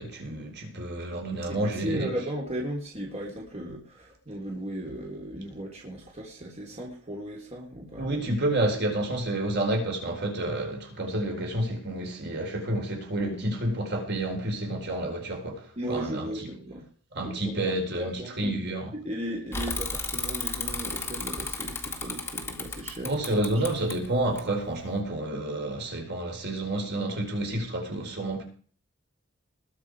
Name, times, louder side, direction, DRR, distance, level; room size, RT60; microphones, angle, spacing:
voice 1, 0.0-2.1 8.0-16.3 17.2-18.9 23.0-28.4, right 1 dB, 55° right, 4.2 m, -29 dB
voice 2, 1.5-8.1 15.8-16.9 17.1-18.8 19.0-23.2, right 1 dB, 35° right, 3.5 m, -36 dB
Bicycle / Mechanisms, 19.5-25.0, left 3 dB, 15° left, 1.8 m, -34 dB
21.0 x 7.7 x 4.8 m
head